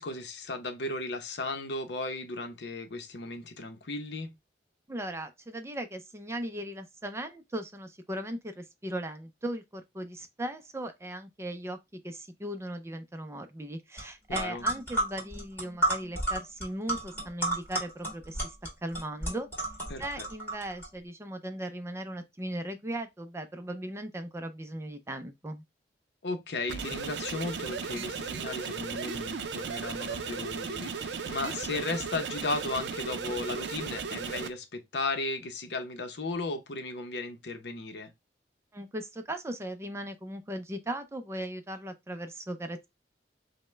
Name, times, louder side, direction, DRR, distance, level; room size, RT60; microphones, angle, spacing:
voice 1, 0.0-4.3 14.3-14.6 19.9-20.3 26.2-38.1, left 2 dB, 65° left, 0.7 m, -35 dB
voice 2, 4.9-11.8 12.0-18.5 18.8-19.5 20.0-25.6 38.7-42.9, right 1 dB, 15° right, 0.4 m, -38 dB
sound 1, 14.0-14.1 14.3-20.9, right 1 dB, 10° left, 1.9 m, -32 dB
sound 2, 26.7-34.5, right 5 dB, 75° right, 0.5 m, -36 dB
5.2 x 2.1 x 3.2 m
head